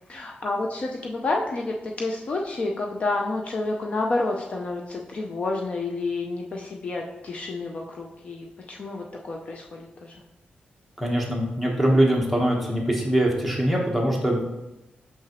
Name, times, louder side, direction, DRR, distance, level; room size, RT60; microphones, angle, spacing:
voice 1, 0.1-10.2, left 2 dB, 40° left, 0 dB, 0.5 m, -29 dB
voice 2, 11.0-14.4, right 1 dB, ahead, -2 dB, 1.1 m, -22 dB
5.8 x 5.7 x 3.0 m, 0.95 s
wide cardioid pair, 170°, 3 cm